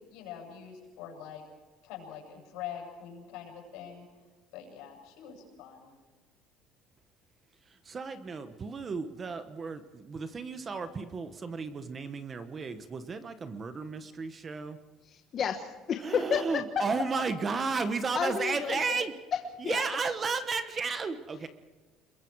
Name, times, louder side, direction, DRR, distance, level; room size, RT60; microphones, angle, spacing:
voice 1, 0.1-1.4 1.8-4.0 4.5-5.9, left 9 dB, 80° left, 1 dB, 7.8 m, -44 dB
voice 2, 7.7-14.8 16.0-19.1 19.6-21.5, right 4 dB, 25° right, 10 dB, 1.2 m, -33 dB
voice 3, 15.0-16.8 18.1-19.0 19.6-19.8, left 7 dB, 35° left, 4 dB, 1.3 m, -31 dB
28.0 x 22.0 x 4.8 m, 1.3 s
cardioid pair, 160°, 0 cm